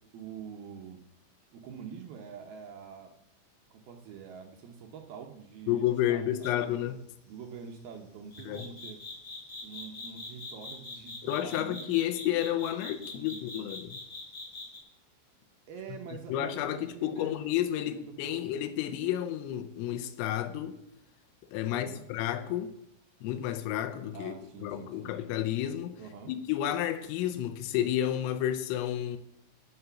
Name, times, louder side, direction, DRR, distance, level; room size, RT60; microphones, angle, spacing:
voice 1, 0.1-1.0 1.5-3.1 3.7-6.8 7.3-9.0 9.6-12.0 13.0-13.7 15.7-17.5 17.8-18.6 21.7-22.1 24.1-25.1 26.0-26.3, right 7 dB, 70° right, 2.5 m, -46 dB
voice 2, 5.7-7.0 8.4-8.7 11.2-14.0 16.3-20.8 21.5-22.7 23.2-24.3 24.6-26.0 26.3-29.2, left 12 dB, 90° left, 3.6 m, -31 dB
sound 1, 6.4-6.7 8.3-14.8, left 3 dB, 30° left, 4.3 m, -42 dB
17.5 x 6.9 x 7.1 m
omnidirectional pair, 5.8 m